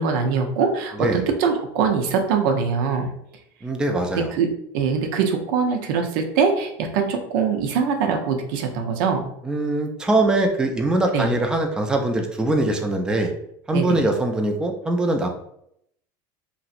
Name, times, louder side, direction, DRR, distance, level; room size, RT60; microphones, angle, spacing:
voice 1, 0.0-3.1 4.1-9.3 11.1-11.3 13.7-14.0, right 6 dB, 80° right, 4 dB, 0.6 m, -23 dB
voice 2, 3.6-4.3 9.4-13.3 13.7-15.3, right 2 dB, 5° right, 3 dB, 0.4 m, -22 dB
3.0 x 2.7 x 2.5 m, 0.73 s
supercardioid pair, 130°, 11 cm